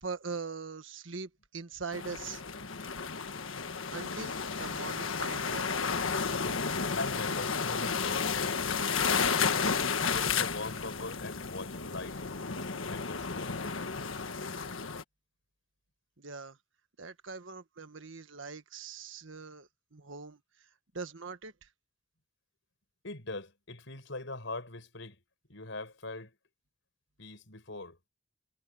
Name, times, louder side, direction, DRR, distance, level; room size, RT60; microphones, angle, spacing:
voice 1, 0.0-2.4 3.9-5.7 16.2-16.6 17.0-20.4 20.9-21.7, right 4 dB, 75° right, 1.5 m, -42 dB
sound 1, 1.9-15.0, left 5 dB, 85° left, 1.6 m, -32 dB
voice 2, 7.0-9.7 10.1-12.2 12.9-13.7 23.0-25.2 25.5-26.3 27.2-28.1, left 2 dB, 65° left, 7.6 m, -41 dB
head